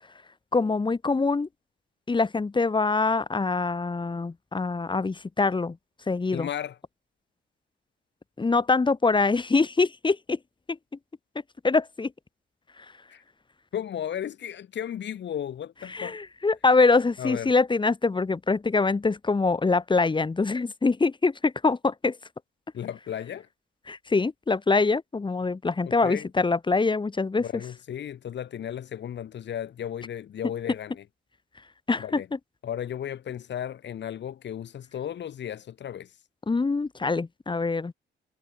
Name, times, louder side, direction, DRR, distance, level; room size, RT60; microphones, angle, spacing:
voice 1, 0.5-1.5 2.1-5.8 6.1-6.5 8.4-10.4 10.7-10.8 11.6-12.1 15.9-22.2 23.9-27.4 31.9-32.2 36.5-37.9, left 3 dB, 25° left, 1.7 m, -24 dB
voice 2, 6.3-6.8 13.1-13.2 13.7-16.2 17.2-17.5 22.7-23.5 25.9-26.3 27.4-31.0 32.0-32.3 32.6-36.2, left 9 dB, 65° left, 5.7 m, -34 dB
cardioid pair, 90°, 20 cm